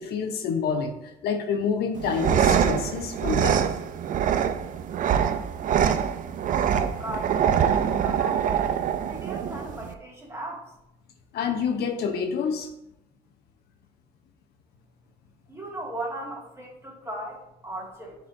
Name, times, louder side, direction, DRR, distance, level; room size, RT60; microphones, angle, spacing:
voice 1, 0.0-3.7 7.7-7.8 11.3-12.7, left 6 dB, 70° left, 4 dB, 0.9 m, -28 dB
sound 1, 2.0-9.9, right 8 dB, 50° right, 0.5 m, -24 dB
voice 2, 6.9-10.7 15.5-18.2, right 1 dB, 15° right, -2 dB, 2.1 m, -37 dB
10.0 x 4.4 x 2.6 m, 0.85 s
cardioid pair, 110°, 17 cm